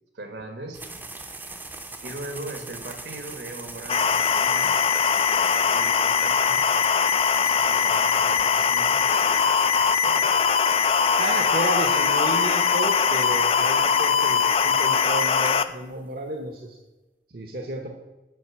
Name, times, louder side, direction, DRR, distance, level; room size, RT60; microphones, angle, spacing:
voice 1, 0.1-0.8 2.0-4.9 5.1-6.6 7.4-10.3, right 2 dB, 75° right, 5 dB, 1.5 m, -39 dB
sound 1, 0.7-16.2, right 2 dB, 10° right, 0.6 m, -43 dB
sound 2, 3.9-15.6, left 6 dB, 30° left, 0.3 m, -21 dB
voice 2, 11.2-16.8 17.3-17.9, right 2 dB, 55° right, 2 dB, 0.9 m, -32 dB
7.8 x 5.3 x 7.1 m, 1.1 s
head